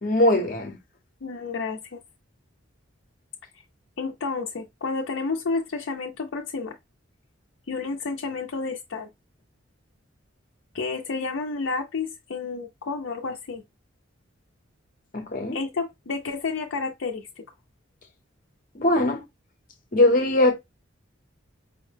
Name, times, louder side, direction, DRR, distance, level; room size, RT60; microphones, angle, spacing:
voice 1, 0.0-0.8 15.1-15.6 18.7-19.2 19.9-20.5, left 1 dB, 45° left, 0.8 m, -21 dB
voice 2, 1.2-2.0 4.0-6.8 7.7-9.1 10.7-13.6 15.5-17.4, left 4 dB, 70° left, 0.5 m, -30 dB
4.8 x 2.1 x 3.2 m
head